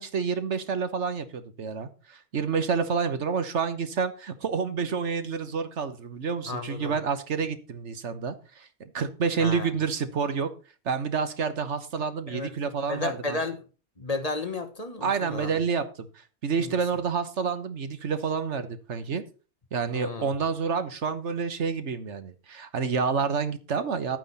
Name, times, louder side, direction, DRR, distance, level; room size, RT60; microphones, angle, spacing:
voice 1, 0.0-10.5 10.8-13.4 15.0-19.2 19.7-24.2, right 5 dB, 75° right, 1.5 m, -29 dB
voice 2, 6.5-6.9 9.4-9.7 12.3-12.5 12.9-13.6 14.0-15.6 16.6-16.8 19.9-20.3, left 3 dB, 30° left, 1.4 m, -32 dB
11.0 x 9.2 x 4.2 m
omnidirectional pair, 1.2 m